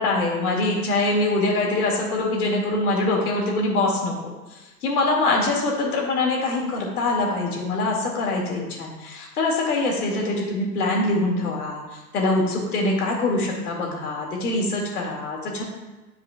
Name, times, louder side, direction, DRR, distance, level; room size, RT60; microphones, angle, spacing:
voice 1, 0.0-4.1 4.5-15.6, left 2 dB, 60° left, -1 dB, 2.2 m, -24 dB
11.0 x 4.8 x 2.4 m, 1.1 s
hypercardioid pair, 120°, 50 cm